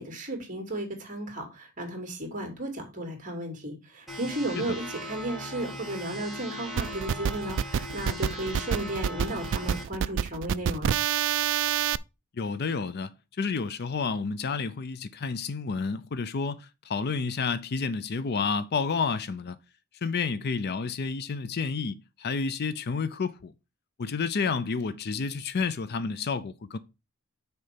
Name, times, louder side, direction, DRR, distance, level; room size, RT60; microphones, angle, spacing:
voice 1, 0.0-11.0, right 1 dB, 35° right, 2.5 m, -34 dB
sound 1, 4.1-9.8, equal, ahead, 2.0 m, -39 dB
sound 2, 6.8-12.0, right 8 dB, 55° right, 0.3 m, -27 dB
voice 2, 12.4-19.6 20.0-23.5 24.0-26.8, left 5 dB, 45° left, 0.5 m, -30 dB
6.4 x 4.5 x 5.8 m
head